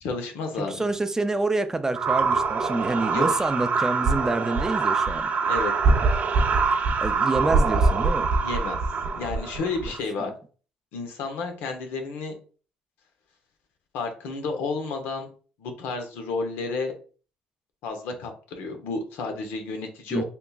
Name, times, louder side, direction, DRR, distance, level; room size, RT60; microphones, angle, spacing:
voice 1, 0.0-0.8 3.1-3.3 5.5-5.7 8.4-8.8 9.1-10.3 10.9-12.3 13.9-15.3 15.6-16.9 17.8-20.2, left 4 dB, 85° left, 5 dB, 0.8 m, -31 dB
voice 2, 0.6-5.3 7.0-8.3 10.2-10.3 20.1-20.2, right 2 dB, 15° right, 9 dB, 0.4 m, -27 dB
sound 1, 1.9-10.0, right 4 dB, 50° right, 0.6 m, -23 dB
3.4 x 2.9 x 2.3 m, 0.39 s
cardioid pair, 95°, 4 cm